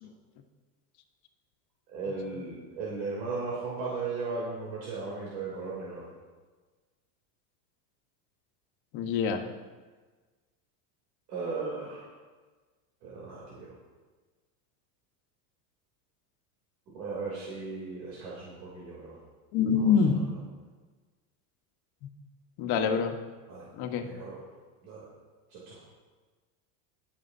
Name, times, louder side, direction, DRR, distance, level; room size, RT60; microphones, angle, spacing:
voice 1, 1.9-6.0 11.3-12.0 13.0-13.7 16.9-19.1 23.5-23.7 24.0-24.4 24.8-25.0 25.5-25.8, right 4 dB, 85° right, -5 dB, 3.1 m, -36 dB
voice 2, 8.9-9.5 19.5-20.3 22.6-23.1 23.8-24.1, left 6 dB, 50° left, 5 dB, 1.3 m, -25 dB
21.5 x 7.4 x 2.7 m, 1.3 s
supercardioid pair, 130°, 49 cm